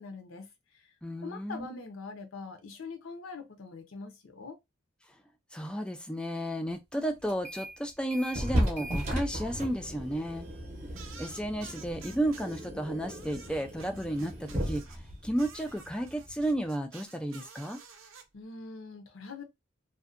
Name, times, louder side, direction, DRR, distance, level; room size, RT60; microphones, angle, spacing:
voice 1, 0.0-0.9 1.2-4.6 18.3-19.4, left 4 dB, 80° left, 0.6 m, -43 dB
voice 2, 1.0-1.7 5.5-10.4 11.2-17.8, right 1 dB, 5° left, 0.3 m, -33 dB
sound 1, 7.3-7.8 8.1-16.6, equal, 35° right, 0.7 m, -36 dB
sound 2, 10.9-12.7 13.1-15.0 15.4-18.2, right 5 dB, 75° right, 0.5 m, -50 dB
2.6 x 2.1 x 2.4 m
head